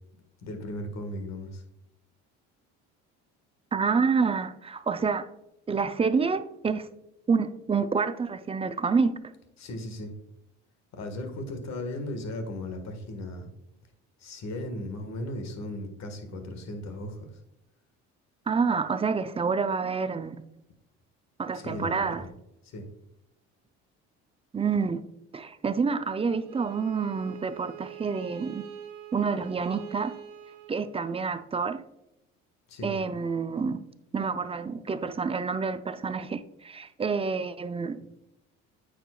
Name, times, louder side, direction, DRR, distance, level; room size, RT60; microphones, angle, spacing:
voice 1, 0.4-1.6 9.6-10.1 10.9-13.5 14.2-17.3 21.5-22.0 22.6-22.9 32.7-32.9, left 1 dB, 55° left, 1.5 m, -36 dB
voice 2, 3.7-5.3 5.7-6.9 7.3-9.1 18.5-20.4 21.4-22.3 24.5-25.0 25.3-28.6 29.1-30.1 30.7-31.8 32.8-33.8 34.1-38.0, right 5 dB, 20° right, 0.4 m, -28 dB
Bowed string instrument, 26.4-31.4, right 11 dB, 75° right, 1.1 m, -44 dB
8.8 x 5.1 x 2.3 m
supercardioid pair, 85°, 32 cm